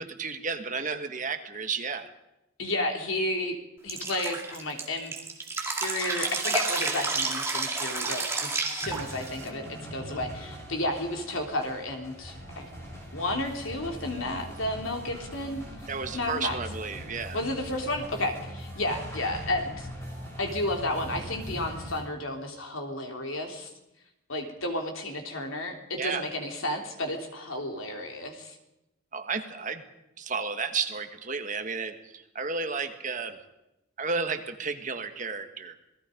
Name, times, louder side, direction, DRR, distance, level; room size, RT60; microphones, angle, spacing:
voice 1, 0.0-2.1 15.9-17.4 25.9-26.3 29.1-29.8 30.2-33.4 34.0-35.7, right 4 dB, 35° right, 7 dB, 1.6 m, -32 dB
voice 2, 2.6-3.6 3.8-5.1 5.6-12.6 13.1-15.6 16.1-16.6 17.3-19.9 20.4-23.7 24.3-28.5, left 1 dB, 75° left, 3 dB, 3.4 m, -32 dB
Drip, 3.9-9.5, right 3 dB, 10° right, 2.4 m, -30 dB
sound 1, 8.8-22.0, equal, 15° left, 6.3 m, -41 dB
27.0 x 19.5 x 5.2 m, 0.91 s
head